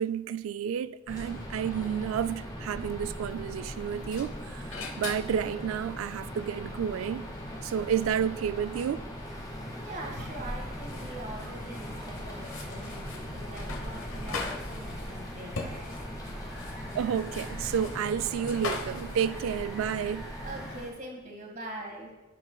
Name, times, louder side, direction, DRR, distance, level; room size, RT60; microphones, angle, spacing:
voice 1, 0.0-7.2 7.6-9.0 16.9-20.2, right 8 dB, 85° right, 0.3 m, -31 dB
sound 1, 1.1-20.8, equal, 20° left, 1.4 m, -39 dB
sound 2, 3.7-19.6, left 4 dB, 85° left, 1.1 m, -43 dB
Water, 9.3-20.9, equal, 5° right, 1.2 m, -51 dB
voice 2, 9.8-16.1 20.4-22.1, right 1 dB, 40° right, 1.7 m, -43 dB
14.5 x 5.6 x 2.3 m
head